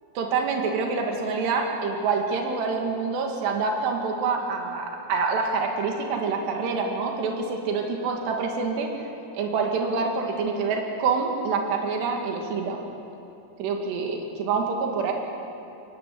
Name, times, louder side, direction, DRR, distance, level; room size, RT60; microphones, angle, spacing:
voice 1, 0.2-8.9 9.3-12.8 13.6-15.1, right 4 dB, 75° right, 1 dB, 4.2 m, -26 dB
22.0 x 20.5 x 8.4 m, 2.8 s
omnidirectional pair, 4.9 m